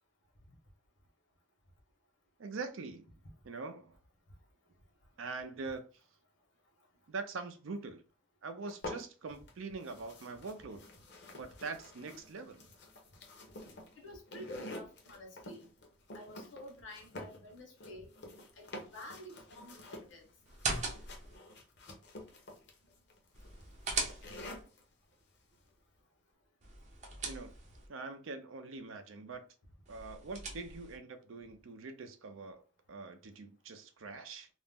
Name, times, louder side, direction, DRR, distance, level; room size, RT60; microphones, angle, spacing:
voice 1, 2.4-3.2 3.4-4.0 5.2-5.8 7.1-8.0 8.4-10.8 11.3-12.6 27.2-27.5 27.9-29.4 29.9-32.6 32.9-34.5, right 4 dB, 90° right, 0.5 m, -43 dB
sound 1, 8.7-9.5 9.8-24.8, left 1 dB, 60° left, 0.6 m, -49 dB
voice 2, 14.0-15.7 16.1-18.1 18.6-20.3, left 1 dB, 75° left, 1.0 m, -50 dB
sound 2, 20.4-21.4 23.3-24.6 26.6-27.9 29.8-31.0, right 3 dB, 35° right, 0.6 m, -39 dB
2.4 x 2.0 x 3.5 m
head